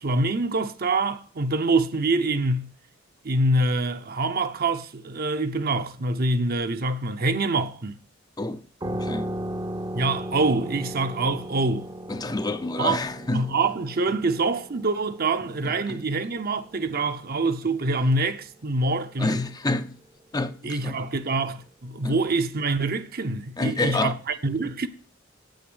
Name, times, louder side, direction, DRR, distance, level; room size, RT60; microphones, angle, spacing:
voice 1, 0.0-2.7 3.2-8.0 9.9-11.9 12.8-13.0 13.3-19.4 20.6-24.9, right 2 dB, 50° right, 0.8 m, -25 dB
voice 2, 8.4-9.3 12.1-13.4 15.6-16.0 19.2-20.0 20.3-21.0 22.0-22.2 23.6-24.1, left 2 dB, 20° left, 0.5 m, -28 dB
sound 1, 8.8-18.0, right 1 dB, 20° right, 0.7 m, -37 dB
8.8 x 6.5 x 8.0 m
head